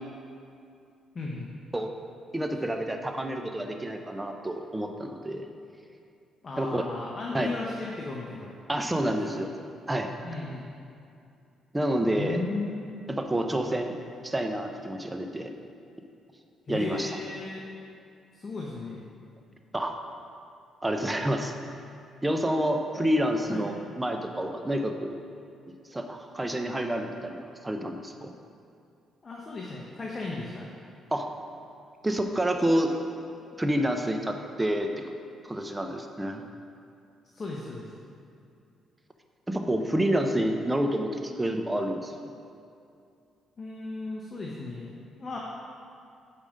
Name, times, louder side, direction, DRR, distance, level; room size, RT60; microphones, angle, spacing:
voice 1, 1.1-1.5 6.4-8.5 9.1-9.4 10.2-10.6 12.0-12.9 16.7-17.6 18.3-19.0 23.5-23.6 29.2-30.7 37.3-37.9 43.6-44.9 45.2-45.4, left 3 dB, 35° left, -3 dB, 0.9 m, -35 dB
voice 2, 2.3-5.4 6.6-6.8 7.3-7.5 8.7-9.5 9.9-10.1 11.7-12.4 13.1-14.0 14.2-15.5 16.7-17.1 19.7-20.0 20.8-21.5 22.2-25.2 25.9-28.3 31.1-31.3 32.0-32.9 33.6-35.1 35.4-36.4 39.5-42.1, right 1 dB, 15° right, 4 dB, 0.7 m, -28 dB
5.5 x 5.0 x 6.4 m, 2.5 s
cardioid pair, 90°, 0 cm